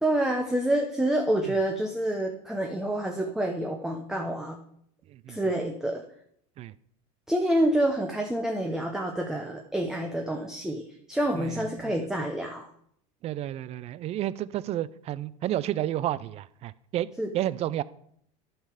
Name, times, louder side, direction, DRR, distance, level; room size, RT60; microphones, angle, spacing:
voice 1, 0.0-4.6 5.3-6.0 7.3-10.8 11.1-12.6 17.2-17.3, right 1 dB, 5° right, 2 dB, 0.8 m, -27 dB
voice 2, 11.4-12.1 13.2-17.1 17.3-17.8, right 13 dB, 35° right, 19 dB, 0.4 m, -31 dB
11.0 x 5.6 x 4.9 m, 0.69 s
supercardioid pair, 125°, 18 cm